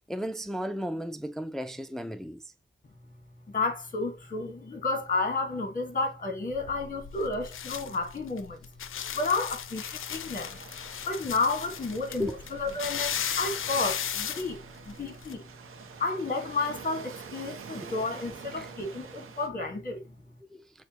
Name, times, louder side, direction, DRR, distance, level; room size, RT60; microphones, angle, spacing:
voice 1, 0.1-2.4 12.2-12.3 18.6-18.7 20.5-20.7, equal, ahead, 0.4 m, -34 dB
voice 2, 3.5-8.6 9.1-10.6 11.0-14.6 14.9-15.5 16.0-20.0, left 3 dB, 40° left, 1.3 m, -31 dB
sound 1, 6.5-15.3, left 9 dB, 75° left, 0.4 m, -36 dB
Waves surf, 10.2-19.5, right 6 dB, 90° right, 0.7 m, -47 dB
6.5 x 2.2 x 2.8 m
cardioid pair, 50°, 21 cm